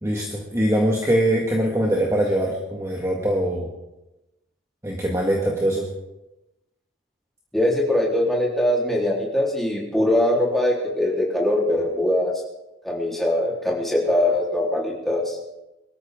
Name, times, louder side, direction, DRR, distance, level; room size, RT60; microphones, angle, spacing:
voice 1, 0.0-3.7 4.8-5.9, right 1 dB, 15° right, -1 dB, 1.7 m, -22 dB
voice 2, 7.5-12.3 12.8-15.4, left 1 dB, ahead, -4 dB, 3.6 m, -22 dB
23.0 x 14.0 x 3.7 m, 0.97 s
head